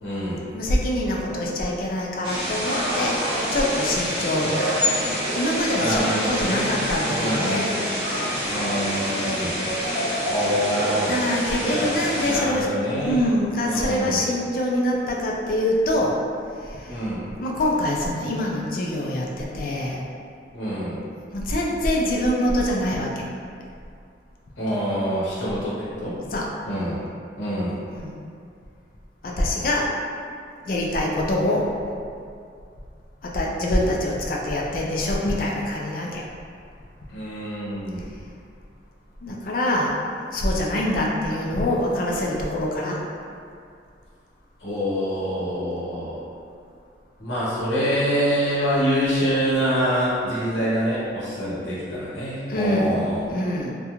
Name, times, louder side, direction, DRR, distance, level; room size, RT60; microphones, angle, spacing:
voice 1, 0.0-0.5 5.8-6.7 7.0-7.5 8.5-9.5 10.3-11.2 11.6-11.8 12.2-13.3 13.6-14.2 16.8-17.2 20.5-21.0 24.6-26.1 26.7-27.0 27.4-27.8 37.1-38.0 44.6-46.2 47.2-53.2, equal, 85° left, -9 dB, 0.8 m, -25 dB
voice 2, 0.5-4.5 5.3-7.7 11.1-12.7 13.0-16.2 16.6-17.0 17.4-20.1 21.3-23.2 26.3-26.5 27.9-28.1 29.2-29.9 30.6-31.7 33.2-36.2 39.2-43.0 52.5-53.7, left 1 dB, 50° left, -2 dB, 0.3 m, -24 dB
sound 1, 2.2-12.4, equal, 30° right, 0.7 m, -26 dB
2.4 x 2.2 x 2.9 m, 2.3 s
head